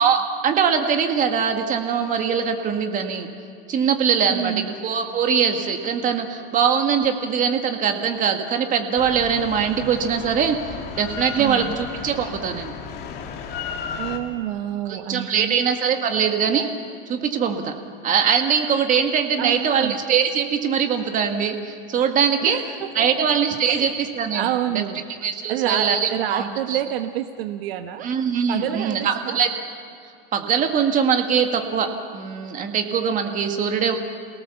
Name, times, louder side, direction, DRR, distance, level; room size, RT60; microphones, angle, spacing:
voice 1, 0.0-3.3 3.7-10.6 11.0-12.7 14.9-16.7 17.1-17.7 18.0-22.6 23.0-24.8 25.2-26.8 28.0-29.5 30.3-31.9 32.1-33.9, right 7 dB, 25° right, 5 dB, 1.9 m, -22 dB
voice 2, 4.3-4.7 11.4-11.7 14.0-15.6 19.4-20.0 22.4-23.3 23.6-23.9 24.3-25.0 25.5-28.1 28.5-29.4, right 12 dB, 75° right, 7 dB, 1.1 m, -28 dB
Drill, 9.0-14.2, left 6 dB, 35° left, 2.3 m, -34 dB
28.5 x 18.0 x 7.1 m, 2.3 s
supercardioid pair, 145°, 29 cm